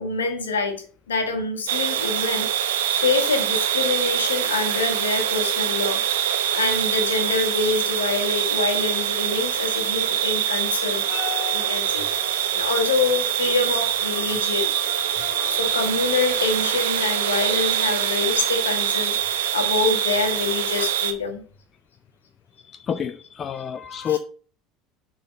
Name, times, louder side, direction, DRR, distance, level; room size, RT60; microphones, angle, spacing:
voice 1, 0.0-6.0 6.5-11.0 11.5-14.7 15.1-15.2 15.5-21.4 24.0-24.2, left 4 dB, 85° left, 1.4 m, -26 dB
sound 1, 1.7-21.1, right 10 dB, 75° right, 0.8 m, -24 dB
sound 2, 10.9-16.1, left 6 dB, 60° left, 2.0 m, -39 dB
voice 2, 22.6-24.2, left 9 dB, 35° left, 0.5 m, -28 dB
7.1 x 3.8 x 6.3 m
hypercardioid pair, 70°, 0 cm